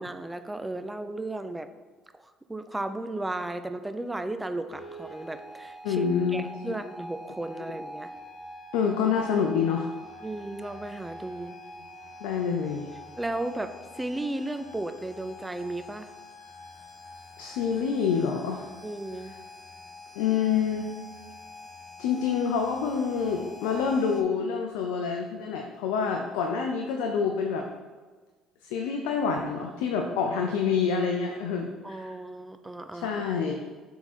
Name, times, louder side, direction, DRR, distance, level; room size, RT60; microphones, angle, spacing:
voice 1, 0.0-1.7 2.1-6.1 6.3-8.1 10.2-11.6 13.2-16.1 18.8-19.3 31.8-33.2, right 2 dB, 10° right, 9 dB, 0.5 m, -35 dB
sound 1, 4.7-24.2, left 1 dB, 25° left, 1.4 m, -45 dB
voice 2, 5.8-6.7 7.6-7.7 8.7-9.9 12.2-12.9 17.4-18.7 20.1-20.9 22.0-27.7 28.6-32.1 32.9-33.6, left 6 dB, 85° left, 3 dB, 0.5 m, -27 dB
7.0 x 3.7 x 4.2 m, 1.4 s
supercardioid pair, 80°, 0 cm